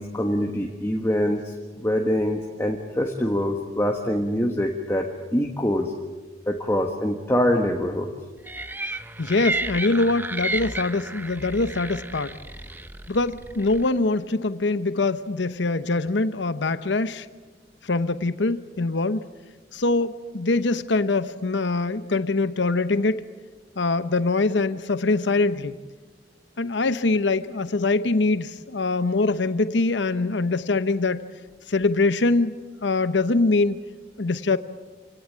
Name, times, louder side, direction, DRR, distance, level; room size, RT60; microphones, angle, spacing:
voice 1, 0.0-5.9 6.5-8.1, equal, 15° left, 1.4 m, -24 dB
sound 1, 8.5-13.9, right 2 dB, 10° right, 0.8 m, -32 dB
voice 2, 9.2-12.4 13.1-17.3 17.8-19.2 19.7-23.3 23.8-25.8 26.6-31.2 31.7-33.8 34.2-34.6, left 3 dB, 80° left, 0.9 m, -23 dB
27.0 x 17.5 x 8.7 m
head